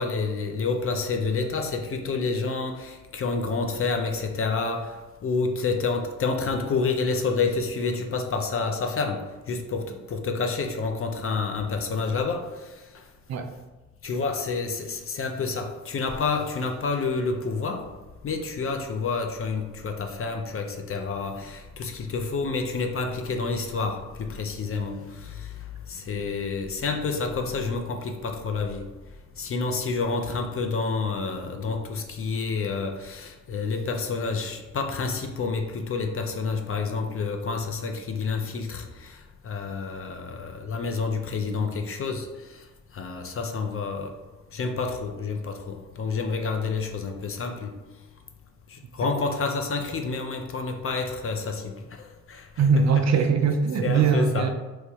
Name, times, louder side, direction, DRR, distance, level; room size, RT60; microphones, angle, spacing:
voice 1, 0.0-5.0 5.2-12.5 14.0-17.9 18.2-25.5 25.9-28.8 29.4-39.1 39.4-42.3 42.9-44.1 44.5-47.7 48.7-51.7 52.3-52.6 53.8-54.5, left 4 dB, 35° left, 0.5 m, -29 dB
voice 2, 52.6-54.5, right 5 dB, 45° right, 0.4 m, -21 dB
3.1 x 2.1 x 3.1 m
hypercardioid pair, 45°, 38 cm